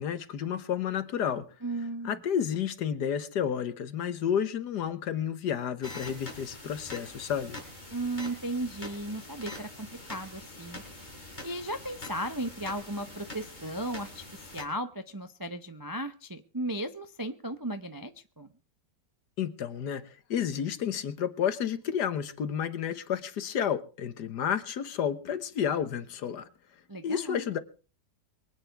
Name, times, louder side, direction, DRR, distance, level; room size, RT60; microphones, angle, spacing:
voice 1, 0.0-1.4 2.0-7.6 19.4-20.0 20.3-26.5 27.0-27.6, left 8 dB, 70° left, 1.6 m, -31 dB
voice 2, 1.6-2.2 7.9-10.8 11.4-14.3 14.5-18.1 18.4-18.5 26.9-27.5, right 1 dB, 25° right, 0.5 m, -35 dB
sound 1, 5.8-14.6, left 1 dB, 25° left, 4.2 m, -44 dB
23.5 x 9.2 x 4.6 m
omnidirectional pair, 1.9 m